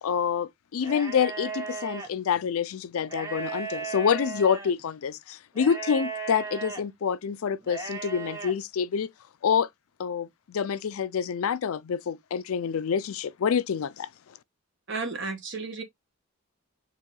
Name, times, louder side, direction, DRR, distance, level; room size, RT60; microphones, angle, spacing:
voice 1, 0.0-9.1 9.4-9.7 10.0-14.1, left 7 dB, 70° left, 0.4 m, -27 dB
sound 1, 0.8-2.1 3.0-4.7 5.6-6.8 7.6-8.5, right 5 dB, 15° right, 1.0 m, -36 dB
voice 2, 14.9-15.8, right 3 dB, 55° right, 1.2 m, -33 dB
4.4 x 2.6 x 3.7 m
head